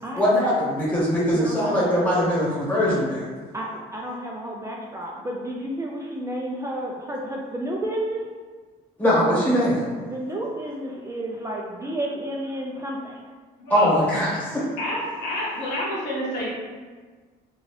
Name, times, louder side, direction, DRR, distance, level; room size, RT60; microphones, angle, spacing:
voice 1, 0.2-3.3 9.0-9.8 13.7-14.6, equal, 10° left, -7 dB, 1.2 m, -21 dB
voice 2, 1.3-1.8 3.5-8.3 10.1-13.2, right 1 dB, 20° right, -2 dB, 0.3 m, -31 dB
voice 3, 13.6-13.9 14.8-16.5, left 1 dB, 85° left, -5 dB, 1.0 m, -29 dB
2.8 x 2.7 x 3.0 m, 1.4 s
cardioid pair, 110°, 17 cm